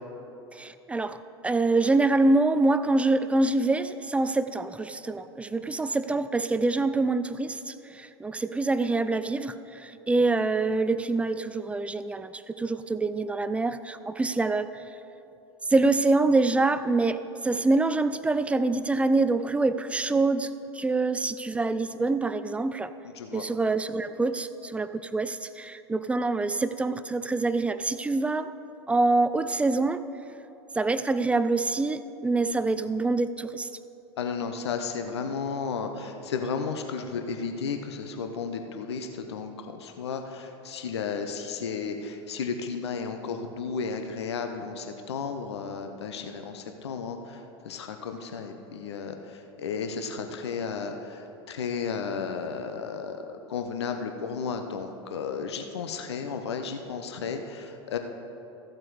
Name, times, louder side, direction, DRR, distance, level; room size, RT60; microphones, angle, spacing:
voice 1, 0.5-14.8 15.7-20.5 20.7-22.9 23.3-28.5 28.9-30.0 30.8-33.7, right 3 dB, 10° right, 13 dB, 0.3 m, -25 dB
voice 2, 34.2-47.4 47.6-49.1 49.6-58.0, left 5 dB, 70° left, 6 dB, 0.8 m, -33 dB
14.5 x 7.5 x 4.7 m, 2.9 s
figure-of-eight pair, 80°, 15 cm